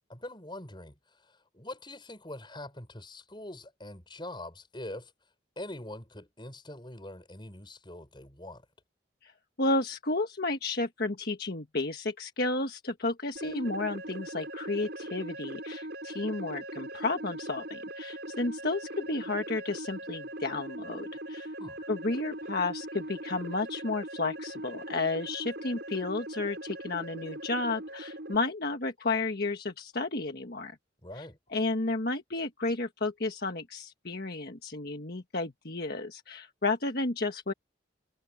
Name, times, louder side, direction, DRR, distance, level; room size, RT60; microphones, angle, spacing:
voice 1, 0.1-5.1 5.6-8.6 21.6-21.8 31.0-31.4, left 1 dB, 25° left, 6.6 m, -43 dB
voice 2, 9.6-21.5 21.9-30.8 31.2-31.3 31.5-37.5, left 3 dB, 55° left, 1.5 m, -32 dB
sound 1, 13.4-28.4, right 1 dB, 60° right, 7.6 m, -40 dB
head